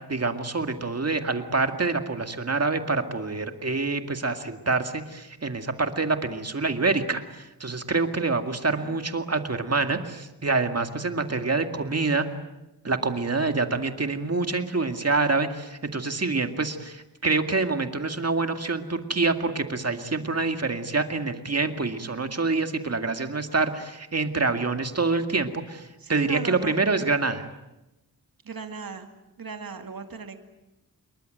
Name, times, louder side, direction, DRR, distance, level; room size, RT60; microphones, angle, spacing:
voice 1, 0.1-12.3 12.8-27.5, right 3 dB, 45° right, 6 dB, 2.1 m, -26 dB
voice 2, 19.9-20.3 22.1-22.4 26.0-27.1 28.4-29.1 29.4-30.4, right 5 dB, 70° right, 6 dB, 2.2 m, -38 dB
27.0 x 22.5 x 9.1 m, 0.96 s
wide cardioid pair, 110°, 36 cm